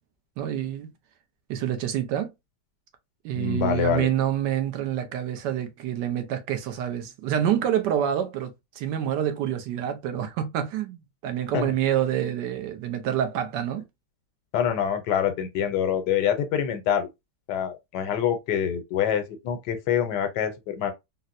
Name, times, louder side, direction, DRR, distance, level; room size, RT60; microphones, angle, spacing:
voice 1, 0.4-0.9 1.5-2.3 3.2-13.8, right 10 dB, 85° right, 1.3 m, -27 dB
voice 2, 3.3-4.1 11.5-11.7 14.5-17.1 17.5-20.9, left 9 dB, 80° left, 1.3 m, -25 dB
4.1 x 2.1 x 2.5 m
omnidirectional pair, 1.8 m